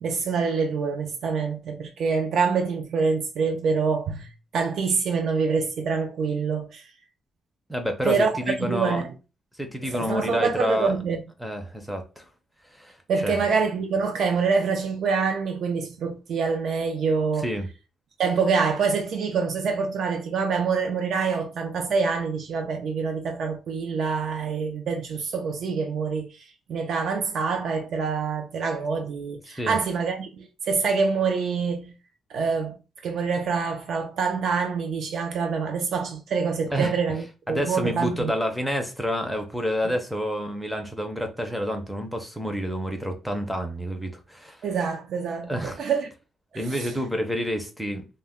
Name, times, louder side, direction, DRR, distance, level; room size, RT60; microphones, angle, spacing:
voice 1, 0.0-6.8 8.1-9.1 9.8-11.2 13.1-17.5 18.2-31.9 32.3-32.8 33.0-38.3 44.6-46.1 46.5-46.9, right 5 dB, 65° right, 0.4 m, -26 dB
voice 2, 7.7-9.0 9.6-10.9 11.4-12.3 12.7-13.0 13.2-13.4 17.4-17.7 29.5-29.8 36.7-37.0 37.5-44.6 45.5-45.8 46.5-48.1, equal, ahead, 0.5 m, -28 dB
2.1 x 2.0 x 3.5 m
cardioid pair, 145°, 0 cm